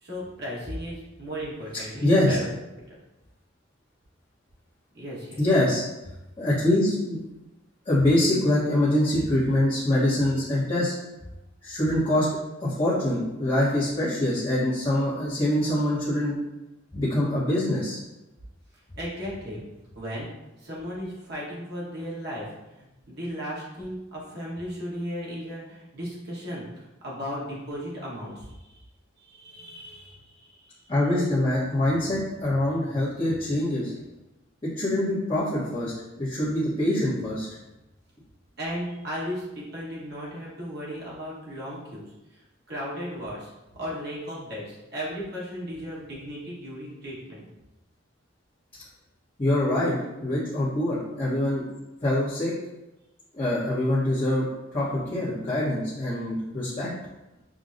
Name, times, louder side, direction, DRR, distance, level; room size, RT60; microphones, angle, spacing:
voice 1, 0.0-2.5 2.9-3.0 4.9-5.4 18.9-19.6 19.9-20.3 20.6-22.5 22.8-28.8 29.2-30.8 38.6-42.4 42.7-47.4, equal, 55° right, -6 dB, 1.3 m, -36 dB
voice 2, 2.0-2.4 5.4-5.8 6.4-7.2 7.8-10.9 11.6-12.3 12.6-16.3 16.9-18.0 30.9-33.9 34.6-37.5 49.4-50.0 50.2-51.6 52.0-52.5 53.4-54.5 54.7-56.9, left 1 dB, 30° left, -11 dB, 1.0 m, -24 dB
6.4 x 2.2 x 2.6 m, 0.99 s
head